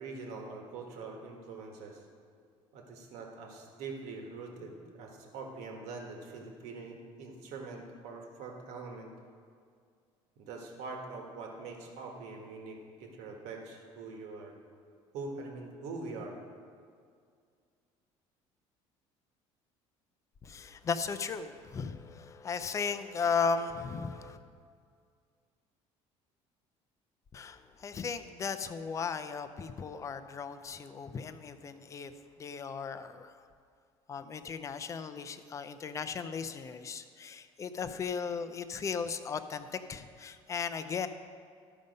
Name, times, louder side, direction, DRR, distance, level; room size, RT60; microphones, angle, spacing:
voice 1, 0.0-2.0 2.7-9.1 10.4-14.5 15.1-16.3, right 3 dB, 80° right, 1 dB, 1.5 m, -43 dB
voice 2, 20.4-24.4 27.3-32.1 32.4-33.3 34.1-41.1, left 5 dB, 25° left, 10 dB, 0.5 m, -36 dB
13.0 x 5.3 x 5.3 m, 2.2 s
cardioid pair, 135°, 12 cm